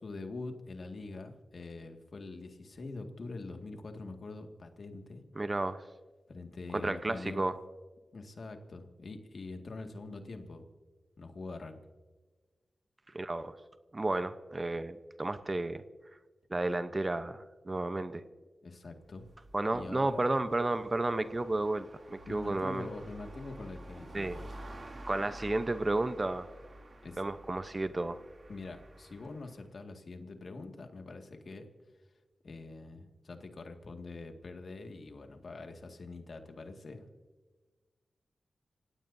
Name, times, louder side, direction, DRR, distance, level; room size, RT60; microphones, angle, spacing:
voice 1, 0.0-5.2 6.3-7.4 8.1-10.7 11.2-11.8 18.6-19.3 19.7-20.3 22.3-24.5 27.0-27.2 28.5-31.7 32.4-37.0, left 3 dB, 60° left, 4 dB, 2.0 m, -44 dB
voice 2, 5.4-5.8 6.7-7.5 13.1-13.6 13.9-15.8 16.5-18.2 19.5-22.9 24.1-24.4 25.1-26.5 27.2-28.2, right 2 dB, 30° right, 11 dB, 0.8 m, -32 dB
sound 1, 19.0-29.6, right 1 dB, 45° right, 2.9 m, -50 dB
27.5 x 17.0 x 2.7 m, 1.3 s
cardioid pair, 60°, 0 cm